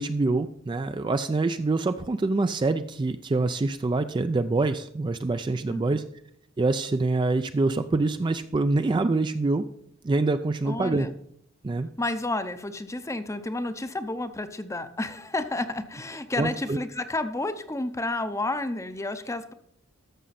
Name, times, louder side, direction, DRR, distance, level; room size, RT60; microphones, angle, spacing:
voice 1, 0.0-6.0 6.6-9.6 10.0-11.1 11.6-11.9 16.4-16.8, right 3 dB, 25° right, 10 dB, 0.3 m, -25 dB
voice 2, 10.6-11.1 12.0-19.5, left 2 dB, 15° left, 11 dB, 0.6 m, -31 dB
13.5 x 6.3 x 4.1 m, 0.72 s
head